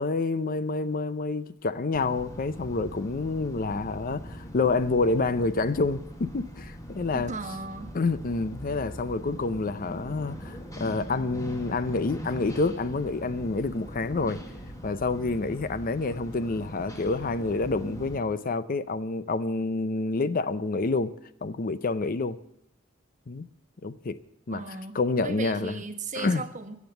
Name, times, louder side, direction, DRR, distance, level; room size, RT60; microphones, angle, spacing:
voice 1, 0.0-7.3 7.9-14.4 14.8-21.1 21.4-22.4 23.3-23.5 23.8-24.2 24.5-24.6 24.9-25.8 26.2-26.4, left 3 dB, 45° left, 0.6 m, -28 dB
sound 1, 1.9-18.2, equal, 15° left, 1.7 m, -41 dB
voice 2, 7.1-7.9 24.5-25.0 25.2-26.8, right 3 dB, 40° right, 1.2 m, -36 dB
15.0 x 7.3 x 8.0 m
head